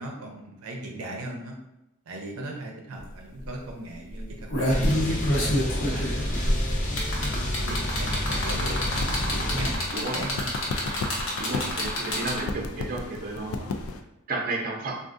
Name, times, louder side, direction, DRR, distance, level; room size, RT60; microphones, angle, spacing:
voice 1, 0.0-1.6 2.1-6.5 7.2-10.5, right 1 dB, 85° right, 0 dB, 0.6 m, -39 dB
sound 1, 3.0-3.1 3.4-3.6 4.2-12.6 13.8-13.9, left 1 dB, 65° left, 0.9 m, -27 dB
sound 2, 4.7-9.8, left 1 dB, 40° left, 0.6 m, -29 dB
sound 3, 8.4-14.0, left 3 dB, 80° left, 0.3 m, -35 dB
voice 2, 11.4-13.7 14.3-15.0, right 2 dB, 45° right, -1 dB, 0.6 m, -32 dB
3.5 x 2.4 x 2.5 m, 0.88 s
head